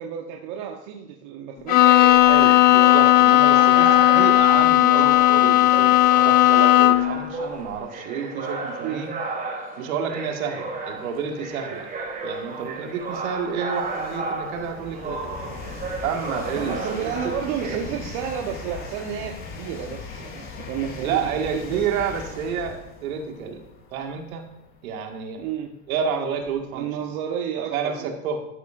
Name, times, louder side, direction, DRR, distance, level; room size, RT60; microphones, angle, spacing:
voice 1, 0.0-2.2 8.8-9.1 16.5-21.9 25.4-25.8 26.7-28.1, right 8 dB, 50° right, 1 dB, 1.2 m, -31 dB
Bowed string instrument, 1.7-7.2, left 15 dB, 20° left, 0.4 m, -15 dB
sound 1, 1.8-17.8, right 3 dB, 20° right, 2.4 m, -33 dB
voice 2, 2.2-9.1 9.8-11.9 12.2-15.5 16.0-17.1 17.6-17.8 21.0-23.6 23.9-24.5 24.8-25.4 25.9-26.9 27.7-28.5, right 6 dB, 65° right, 3 dB, 2.1 m, -30 dB
sound 2, 11.3-11.4 12.0-26.8, left 4 dB, 50° left, 4.6 m, -40 dB
12.5 x 11.5 x 2.6 m, 0.85 s
hypercardioid pair, 105°, 44 cm